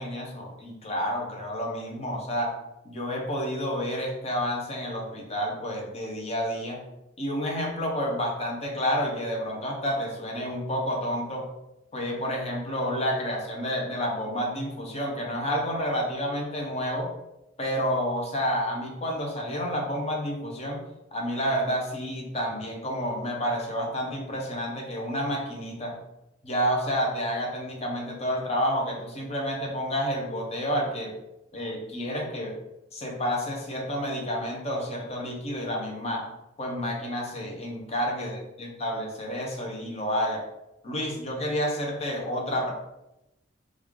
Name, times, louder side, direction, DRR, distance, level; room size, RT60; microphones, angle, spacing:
voice 1, 0.0-2.6 2.8-6.8 7.2-11.5 11.9-17.1 17.6-20.8 21.1-26.0 26.4-31.1 31.5-32.5 32.9-36.3 36.6-40.4 40.8-42.7, equal, 35° left, -1 dB, 0.7 m, -29 dB
3.2 x 2.4 x 3.5 m, 0.90 s
head